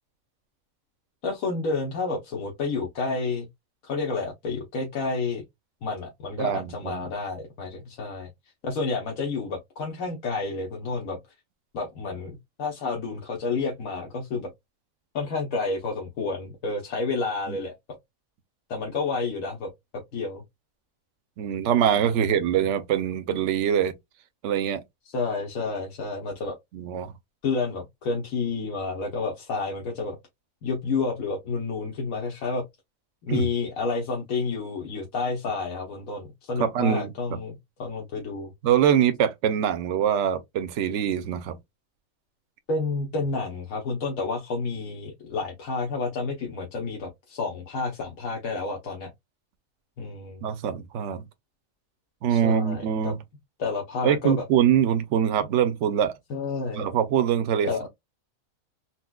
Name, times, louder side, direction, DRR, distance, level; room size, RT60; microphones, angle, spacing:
voice 1, 1.2-3.5 3.8-5.4 5.8-8.3 8.6-11.2 11.7-14.5 15.1-17.7 18.7-20.4 22.1-22.5 25.0-26.6 27.4-30.2 30.6-32.6 33.3-38.5 42.7-49.1 50.0-50.4 52.3-53.1 53.6-54.5 56.3-56.8 57.6-57.8, left 4 dB, 80° left, 1.2 m, -30 dB
voice 2, 6.4-7.0 17.5-17.6 21.4-23.9 24.4-24.8 26.7-27.1 33.3-33.5 36.6-37.1 38.6-41.5 50.4-51.2 52.2-53.2 54.0-56.1 56.7-57.7, right 9 dB, 65° right, 0.9 m, -23 dB
4.2 x 2.2 x 2.2 m
omnidirectional pair, 1.5 m